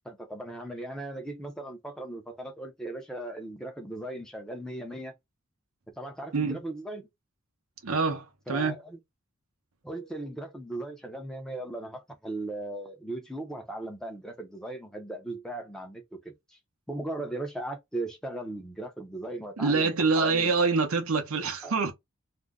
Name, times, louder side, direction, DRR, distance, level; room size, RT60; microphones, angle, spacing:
voice 1, 0.0-5.1 6.0-7.0 8.5-9.0 9.8-16.6 16.9-20.5 21.6-21.9, right 1 dB, 5° left, 0.6 m, -38 dB
voice 2, 7.8-8.8 19.6-21.9, right 4 dB, 80° right, 0.7 m, -26 dB
2.5 x 2.1 x 3.5 m
head